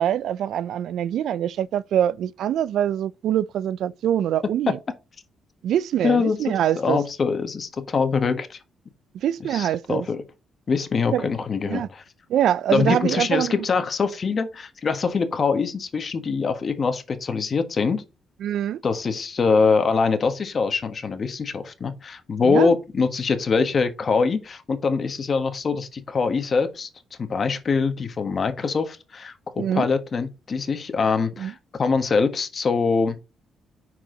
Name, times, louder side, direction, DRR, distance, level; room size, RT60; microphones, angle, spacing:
voice 1, 0.0-4.8 5.6-7.0 9.1-10.1 11.1-11.3 11.6-11.9 12.3-13.6 18.4-18.8 22.4-22.7 29.6-29.9 31.4-31.5, right 10 dB, 75° right, 0.3 m, -24 dB
voice 2, 6.0-8.6 9.5-10.2 10.7-12.0 12.7-18.0 18.8-26.9 27.2-33.2, left 5 dB, 45° left, 1.4 m, -23 dB
9.3 x 4.7 x 3.9 m
cardioid pair, 90°, 0 cm